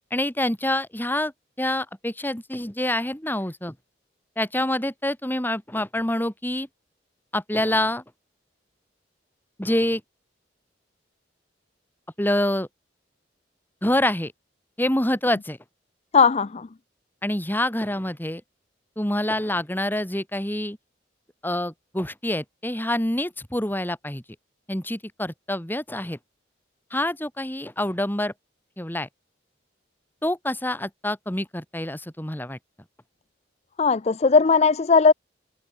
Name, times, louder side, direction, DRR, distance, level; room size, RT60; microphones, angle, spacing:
voice 1, 0.1-1.3 1.6-3.7 4.4-6.7 7.3-8.0 9.6-10.0 12.2-12.7 13.8-14.3 14.8-15.6 17.2-18.4 19.0-20.8 21.4-24.2 24.7-26.2 26.9-28.3 28.8-29.1 30.2-32.6, left 1 dB, 10° left, 2.6 m, -26 dB
voice 2, 16.1-16.7 33.8-35.1, left 5 dB, 35° left, 0.5 m, -18 dB
open air
head